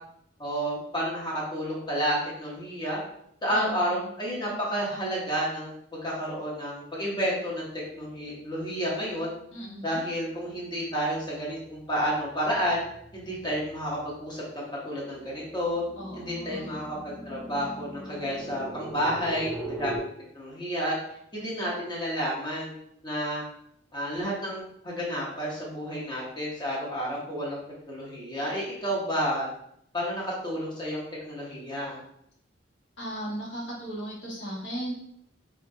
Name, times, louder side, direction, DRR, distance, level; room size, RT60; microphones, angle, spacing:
voice 1, 0.4-3.0 3.4-9.3 9.8-12.8 13.1-15.8 16.1-20.0 20.3-20.9 21.3-22.7 23.0-23.4 23.9-27.6 27.9-29.5 29.9-32.0, equal, 25° left, -6 dB, 0.8 m, -30 dB
voice 2, 3.5-4.0 9.5-10.0 16.0-16.9 33.0-34.9, right 1 dB, 75° left, -5 dB, 1.0 m, -37 dB
sound 1, 10.3-10.7 11.1-20.0, right 2 dB, 5° right, 0.5 m, -41 dB
2.8 x 2.3 x 2.6 m, 0.72 s
head